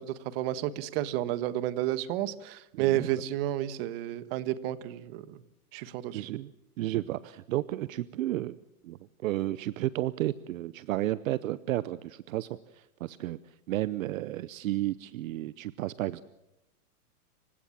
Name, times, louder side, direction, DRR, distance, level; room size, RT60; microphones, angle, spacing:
voice 1, 0.0-5.4 5.7-6.3, right 13 dB, 40° right, 14 dB, 1.3 m, -31 dB
voice 2, 2.7-3.1 6.1-6.5 6.8-8.6 8.8-16.2, right 15 dB, 65° right, 17 dB, 0.8 m, -32 dB
27.5 x 16.5 x 7.4 m, 0.90 s
supercardioid pair, 155°, 44 cm